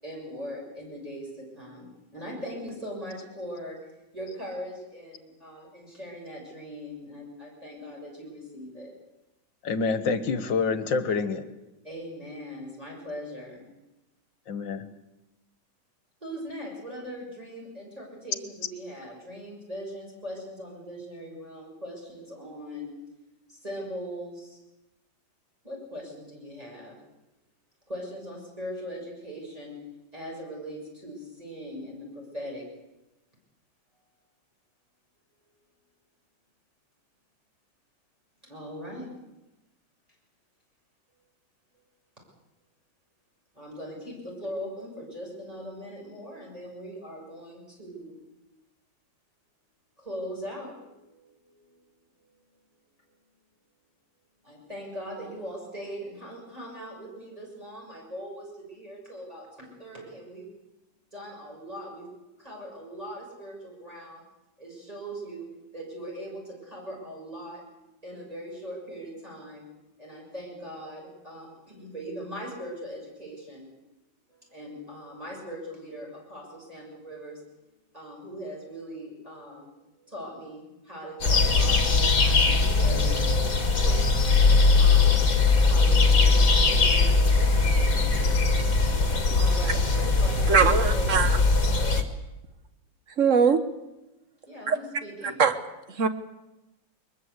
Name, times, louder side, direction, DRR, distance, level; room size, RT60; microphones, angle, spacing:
voice 1, 0.0-3.8 4.1-8.9 11.8-13.7 16.2-22.9 23.5-24.6 25.6-27.0 27.9-29.8 30.1-32.7 38.4-39.1 43.5-48.2 50.0-51.8 54.4-60.5 61.1-62.1 62.4-64.2 64.6-67.7 68.0-69.7 70.0-73.7 74.3-77.4 77.9-83.2 83.7-84.0 84.7-85.2 85.6-87.1 87.5-88.4 89.3-91.2 94.5-95.4, equal, 20° right, -3 dB, 6.9 m, -40 dB
voice 2, 9.6-11.4 14.5-14.9, left 4 dB, 65° left, 11 dB, 2.1 m, -27 dB
sound 1, 81.2-92.0, left 3 dB, 45° left, 2.2 m, -21 dB
voice 3, 90.5-91.3 93.2-93.6 94.7-94.8 95.2-95.5 96.0-96.1, right 6 dB, 45° right, 10 dB, 1.5 m, -21 dB
22.5 x 21.0 x 8.2 m, 0.97 s
omnidirectional pair, 2.2 m